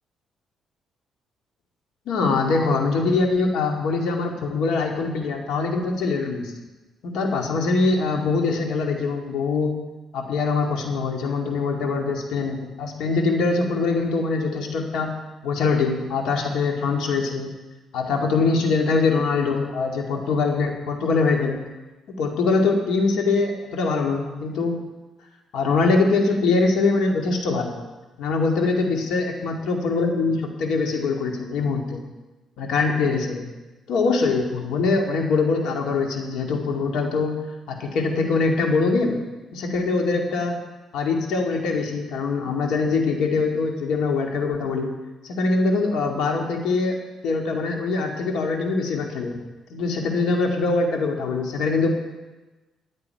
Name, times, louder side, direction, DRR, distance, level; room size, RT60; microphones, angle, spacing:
voice 1, 2.1-6.5 7.0-9.7 10.1-15.1 15.4-17.5 17.9-21.6 22.2-24.7 25.5-27.8 28.2-32.0 32.6-33.5 33.9-37.3 37.7-39.2 39.5-40.6 40.9-44.9 45.2-47.0 47.2-49.4 49.7-51.9, left 4 dB, 85° left, 2 dB, 2.2 m, -23 dB
17.0 x 9.6 x 4.6 m, 1.2 s
cardioid pair, 90°, 0 cm